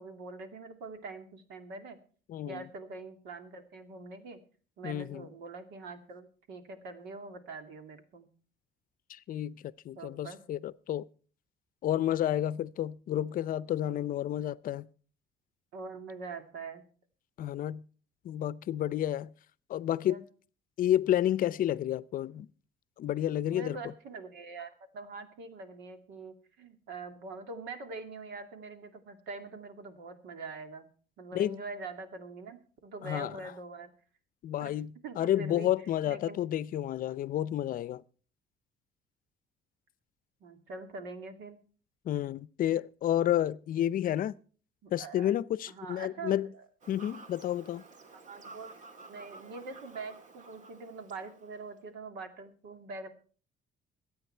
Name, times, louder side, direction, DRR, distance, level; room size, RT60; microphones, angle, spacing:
voice 1, 0.0-2.0 2.5-4.4 4.8-8.3 10.0-10.4 15.7-16.8 20.1-20.2 23.5-30.9 31.2-33.9 34.6-34.7 35.0-35.7 36.1-36.4 40.4-41.6 44.8-45.3 45.7-46.3 48.3-53.1, right 3 dB, 85° right, 2.3 m, -44 dB
voice 2, 2.3-2.7 4.8-5.3 9.1-11.1 11.8-14.9 17.4-17.8 18.2-19.3 19.7-20.2 20.8-22.5 23.0-23.8 31.3-31.6 33.0-33.3 34.4-38.0 42.0-44.3 44.9-46.5 46.9-47.8, left 12 dB, 55° left, 0.6 m, -30 dB
Fowl / Bird vocalization bird call bird song, 46.8-51.8, right 3 dB, 45° right, 2.0 m, -52 dB
23.5 x 8.8 x 4.5 m
cardioid pair, 110°, 17 cm